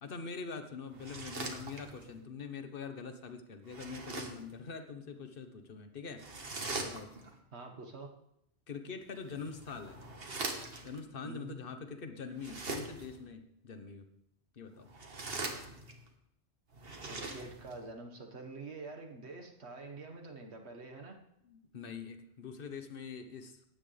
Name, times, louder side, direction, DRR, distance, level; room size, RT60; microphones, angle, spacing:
voice 1, 0.0-6.2 6.8-7.1 8.7-10.0 10.8-14.1 14.5-14.9 21.4-23.6, left 5 dB, 55° left, 7 dB, 1.3 m, -44 dB
sound 1, 0.9-2.2 3.7-4.5 6.2-7.4 9.2-11.0 12.3-13.2 14.8-16.1 16.7-17.8, right 3 dB, 60° right, 1.6 m, -42 dB
voice 2, 7.5-8.1 11.2-11.5 17.1-21.2, right 3 dB, 80° right, 3 dB, 1.8 m, -46 dB
15.5 x 10.0 x 3.4 m, 0.77 s
omnidirectional pair, 1.1 m